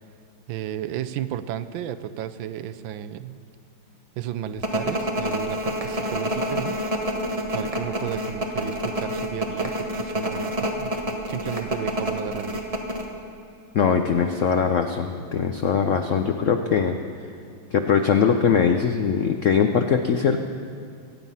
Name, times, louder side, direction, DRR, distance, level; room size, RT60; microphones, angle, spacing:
voice 1, 0.5-3.4 4.2-6.8 7.5-12.7, right 10 dB, 80° right, 11 dB, 1.4 m, -33 dB
sound 1, 4.6-13.1, equal, 20° right, 1.2 m, -27 dB
voice 2, 13.7-17.0 17.7-20.4, left 6 dB, 80° left, 6 dB, 0.6 m, -21 dB
24.5 x 9.1 x 5.6 m, 2.4 s
omnidirectional pair, 2.2 m